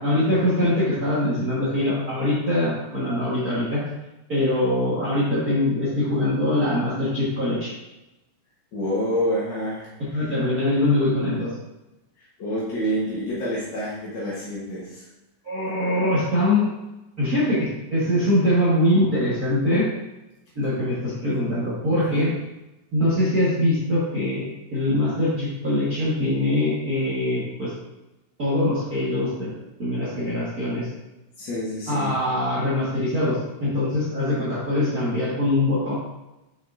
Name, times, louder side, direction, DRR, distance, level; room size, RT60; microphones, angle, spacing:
voice 1, 0.0-3.8 4.3-7.7 10.0-11.5 15.4-16.7 17.2-19.9 20.5-22.3 22.9-27.7 28.4-30.9 31.9-35.9, left 1 dB, 40° right, -8 dB, 1.3 m, -23 dB
voice 2, 8.7-9.9 12.2-15.1 22.1-22.2 31.4-32.2, equal, 55° left, -7 dB, 1.3 m, -28 dB
7.1 x 6.0 x 2.6 m, 1.0 s
omnidirectional pair, 3.8 m